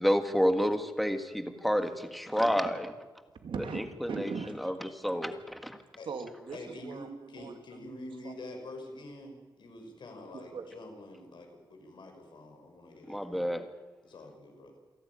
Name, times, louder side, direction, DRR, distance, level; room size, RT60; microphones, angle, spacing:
voice 1, 0.0-2.9 4.0-4.3 4.6-5.8 13.1-13.7, equal, ahead, 7 dB, 1.6 m, -29 dB
voice 2, 3.3-4.7 6.1-7.6 8.2-8.3 10.3-10.7, right 5 dB, 85° right, 5 dB, 2.5 m, -40 dB
voice 3, 6.5-13.6 14.0-14.7, left 1 dB, 70° left, 3 dB, 5.5 m, -46 dB
28.0 x 12.0 x 9.6 m, 1.3 s
wide cardioid pair, 125°, 8 cm